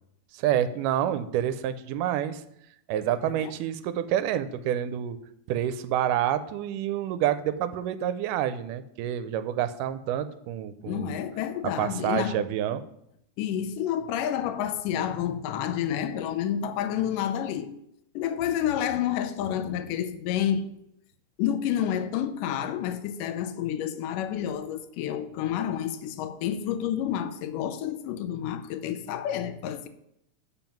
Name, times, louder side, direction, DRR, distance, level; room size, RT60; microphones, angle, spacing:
voice 1, 0.4-2.4 2.9-5.2 5.5-11.2 11.8-12.8, right 11 dB, 85° right, 2.1 m, -28 dB
voice 2, 10.9-12.4 13.4-17.7 18.2-20.7 21.4-29.9, left 10 dB, 85° left, 2.2 m, -29 dB
7.1 x 5.6 x 5.8 m
omnidirectional pair, 3.7 m